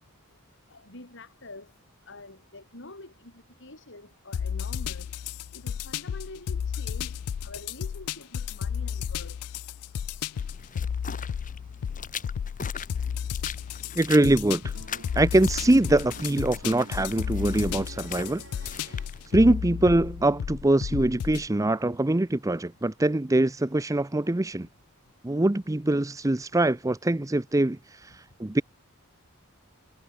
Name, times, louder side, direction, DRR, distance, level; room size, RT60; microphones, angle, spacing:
voice 1, 0.7-1.7 2.1-5.1 5.5-9.4, left 2 dB, 55° left, 6.1 m, -46 dB
sound 1, 4.3-21.5, left 8 dB, 90° left, 0.4 m, -33 dB
sound 2, 10.3-20.3, left 6 dB, 35° left, 5.2 m, -42 dB
voice 2, 14.0-14.7 15.2-18.4 18.7-18.9 19.3-24.7 25.2-28.6, right 1 dB, 15° right, 0.5 m, -23 dB
sound 3, 14.7-19.6, right 2 dB, 60° right, 6.9 m, -49 dB
head